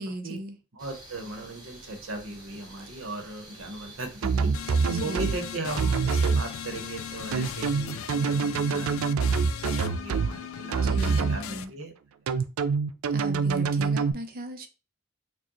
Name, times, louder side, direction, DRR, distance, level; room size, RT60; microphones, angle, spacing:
voice 1, 0.0-0.6 4.8-5.4 10.7-11.7 13.0-14.7, right 1 dB, 45° right, 0.6 m, -37 dB
voice 2, 0.7-4.5 5.0-8.9 9.6-11.9, right 2 dB, 70° right, 1.0 m, -37 dB
sound 1, 0.8-7.8, right 1 dB, 20° right, 1.1 m, -49 dB
sound 2, 4.2-5.4 5.8-6.4 7.3-10.3 10.7-11.4 12.3-14.1, right 5 dB, 90° right, 0.4 m, -25 dB
sound 3, 4.5-11.6, left 8 dB, 70° left, 0.3 m, -38 dB
4.5 x 2.3 x 3.0 m
head